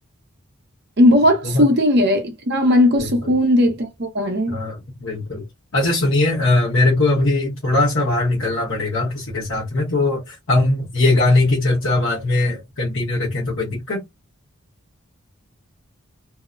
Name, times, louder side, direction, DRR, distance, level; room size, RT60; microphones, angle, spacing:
voice 1, 1.0-4.6, left 1 dB, 50° right, 0.8 m, -17 dB
voice 2, 3.0-3.3 4.5-5.5 5.7-14.0, left 2 dB, 65° left, 1.0 m, -20 dB
2.7 x 2.1 x 2.4 m
head